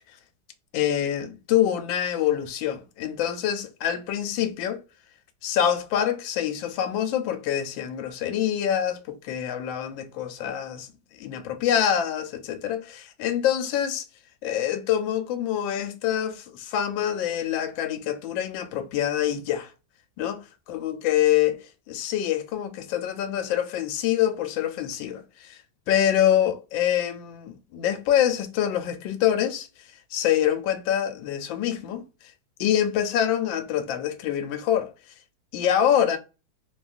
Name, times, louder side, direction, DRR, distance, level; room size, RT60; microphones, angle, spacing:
voice 1, 0.7-4.8 5.4-10.9 11.2-14.1 14.4-19.7 20.2-21.6 21.9-25.6 25.9-29.7 30.1-32.0 32.6-34.9 35.5-36.2, left 10 dB, 80° left, 1.3 m, -25 dB
3.2 x 2.3 x 2.4 m
omnidirectional pair, 2.1 m